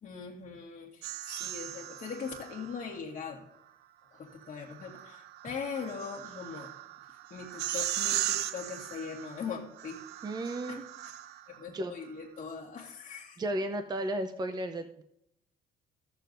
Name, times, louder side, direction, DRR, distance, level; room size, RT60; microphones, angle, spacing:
voice 1, 0.0-3.4 4.1-6.7 7.1-10.3 10.7-10.8 11.5-13.4, left 6 dB, 45° left, -6 dB, 1.7 m, -41 dB
sound 1, 1.0-3.0 4.4-11.6, right 13 dB, 80° right, 0.6 m, -38 dB
voice 2, 10.2-10.8 11.7-11.9 13.4-15.0, right 1 dB, 25° right, 8 dB, 0.7 m, -34 dB
16.0 x 6.7 x 2.6 m, 0.76 s
cardioid pair, 110°, 17 cm